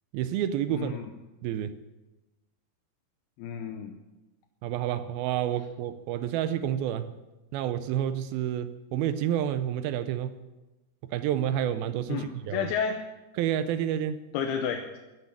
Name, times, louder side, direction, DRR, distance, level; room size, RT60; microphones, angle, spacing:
voice 1, 0.1-1.0 1.4-1.8 4.6-7.1 7.5-10.4 11.1-12.7 13.4-14.2, right 10 dB, 80° right, 2.3 m, -29 dB
voice 2, 0.7-1.1 3.4-3.9 12.1-13.0 14.3-15.0, left 7 dB, 80° left, 2.6 m, -31 dB
14.0 x 6.7 x 9.7 m
omnidirectional pair, 4.8 m